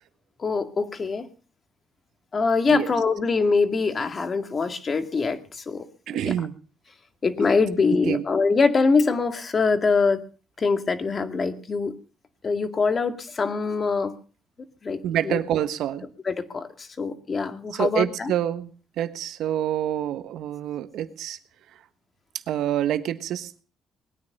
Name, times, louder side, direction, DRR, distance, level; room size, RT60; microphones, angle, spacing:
voice 1, 0.4-1.3 2.3-5.9 6.2-6.3 7.2-10.2 10.6-11.9 12.4-14.1 14.8-15.4 16.3-18.3, left 4 dB, 40° left, 9 dB, 2.2 m, -23 dB
voice 2, 6.1-6.6 8.0-8.2 15.0-16.1 17.7-21.4 22.5-23.6, right 11 dB, 80° right, 11 dB, 1.5 m, -27 dB
20.5 x 9.8 x 6.8 m, 0.38 s
cardioid pair, 90°, 0 cm